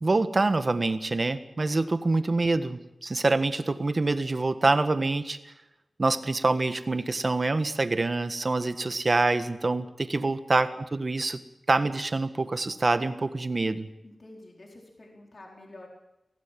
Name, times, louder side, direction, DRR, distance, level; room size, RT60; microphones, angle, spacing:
voice 1, 0.0-5.5 6.0-11.4 11.7-13.9, right 3 dB, 40° right, 10 dB, 1.5 m, -26 dB
voice 2, 14.0-15.9, left 2 dB, 45° left, -1 dB, 4.3 m, -48 dB
24.5 x 17.0 x 7.7 m, 0.94 s
wide cardioid pair, 110°, 0 cm